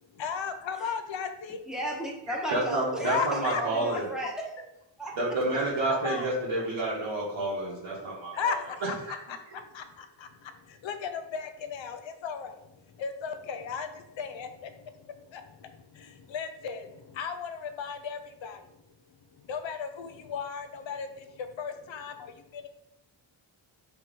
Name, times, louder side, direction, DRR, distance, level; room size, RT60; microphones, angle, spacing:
voice 1, 0.2-1.6 3.0-3.6 3.9-4.0 5.9-6.3 8.4-8.9 9.3-18.8 19.3-22.7, left 6 dB, 70° left, 7 dB, 0.7 m, -36 dB
voice 2, 1.7-4.5 5.0-5.1, equal, ahead, -3 dB, 1.4 m, -34 dB
voice 3, 2.5-4.1 5.2-8.4, right 2 dB, 80° right, -8 dB, 1.6 m, -29 dB
5.9 x 3.1 x 5.2 m, 0.89 s
wide cardioid pair, 135°, 47 cm